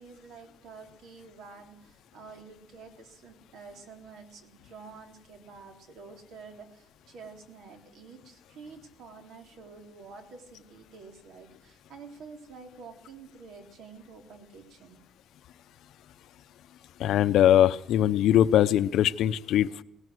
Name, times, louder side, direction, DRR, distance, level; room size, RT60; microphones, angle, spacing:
voice 1, 0.0-15.0, right 4 dB, 85° right, 4 dB, 3.8 m, -49 dB
voice 2, 17.0-19.8, left 11 dB, 80° left, 14 dB, 0.8 m, -21 dB
19.0 x 17.5 x 7.9 m, 0.84 s
cardioid pair, 175°, 0 cm